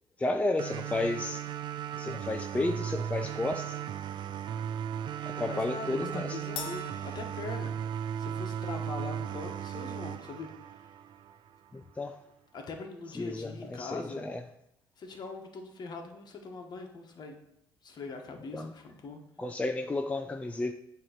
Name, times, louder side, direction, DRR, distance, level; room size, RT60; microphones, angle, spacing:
voice 1, 0.2-1.4 2.0-3.8 5.2-6.4 11.7-12.2 13.2-14.4 18.5-18.7 19.4-20.7, left 2 dB, 15° left, 6 dB, 0.4 m, -32 dB
sound 1, 0.6-11.6, right 9 dB, 50° right, 0.4 m, -36 dB
voice 2, 5.5-7.8 8.2-10.8 12.5-14.2 15.0-17.3 17.8-19.2, left 4 dB, 45° left, 3 dB, 1.3 m, -42 dB
Crash cymbal, 6.6-8.2, left 7 dB, 65° left, 0.8 m, -43 dB
7.6 x 3.0 x 5.8 m, 0.82 s
supercardioid pair, 80°, 10 cm